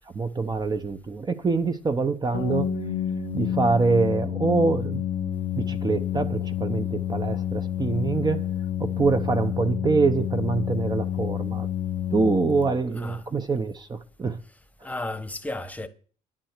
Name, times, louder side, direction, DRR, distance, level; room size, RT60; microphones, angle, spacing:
voice 1, 0.1-2.7 3.3-5.0 5.6-8.5 8.8-11.7 12.1-14.4 14.8-14.9, right 4 dB, 25° right, 0.9 m, -25 dB
Bass guitar, 2.3-8.6, left 4 dB, 85° left, 0.9 m, -36 dB
Organ, 2.3-13.1, left 11 dB, 40° left, 0.8 m, -29 dB
voice 2, 14.8-15.9, left 2 dB, 10° left, 1.1 m, -33 dB
10.0 x 7.4 x 6.7 m
cardioid pair, 110°, 17 cm